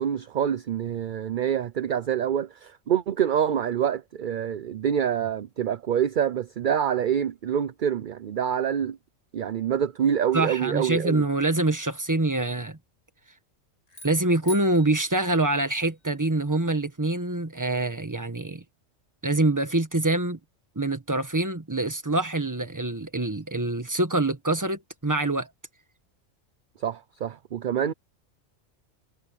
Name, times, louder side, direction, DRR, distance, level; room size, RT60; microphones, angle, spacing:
voice 1, 0.0-9.0 9.3-11.2 26.8-27.9, right 9 dB, 50° right, 0.7 m, -26 dB
voice 2, 10.3-12.8 14.0-18.6 19.2-20.4 20.7-25.5, right 2 dB, 15° right, 1.5 m, -25 dB
sound 1, 13.9-16.2, right 1 dB, 80° left, 6.7 m, -46 dB
omnidirectional pair, 1.3 m